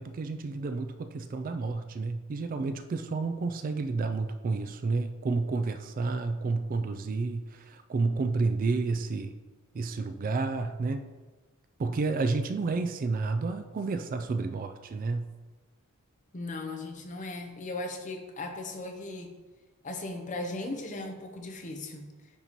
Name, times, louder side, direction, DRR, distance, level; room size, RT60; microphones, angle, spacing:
voice 1, 0.0-9.3 9.7-11.1 11.8-15.3, right 3 dB, 40° right, 8 dB, 0.3 m, -30 dB
voice 2, 16.3-19.3 19.8-22.1, left 2 dB, 35° left, 4 dB, 0.7 m, -37 dB
9.1 x 4.1 x 3.0 m, 1.2 s
head